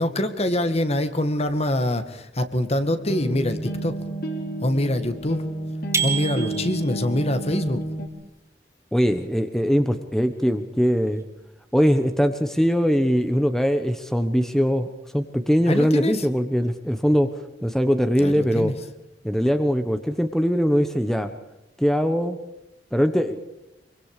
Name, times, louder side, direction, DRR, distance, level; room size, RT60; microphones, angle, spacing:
voice 1, 0.0-4.0 4.6-5.4 6.0-7.8 15.7-16.3 18.2-18.7, left 1 dB, 35° left, 10 dB, 1.9 m, -24 dB
sound 1, 2.9-8.1, right 1 dB, 60° left, 3.5 m, -31 dB
sound 2, 5.9-7.0, right 6 dB, 15° right, 3.3 m, -27 dB
voice 2, 8.9-11.2 11.7-17.3 17.6-18.7 19.2-21.3 21.8-22.4 22.9-23.4, equal, 5° left, 8 dB, 1.1 m, -21 dB
25.5 x 24.0 x 5.0 m, 0.93 s
head